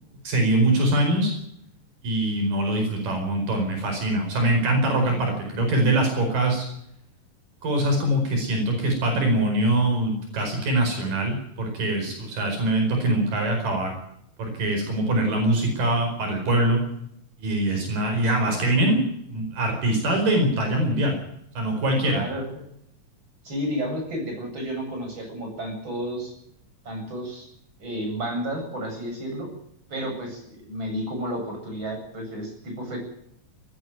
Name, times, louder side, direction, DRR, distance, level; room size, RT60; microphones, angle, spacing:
voice 1, 0.2-1.3 2.0-6.6 7.6-14.0 14.4-16.8 17.4-19.0 19.3-21.2 21.6-22.2, right 1 dB, 75° right, 3 dB, 6.4 m, -23 dB
voice 2, 22.0-22.4 23.4-26.3 26.9-27.5 27.8-29.5 29.9-33.0, equal, 35° right, 2 dB, 8.5 m, -31 dB
19.5 x 15.0 x 9.3 m, 0.74 s
omnidirectional pair, 3.9 m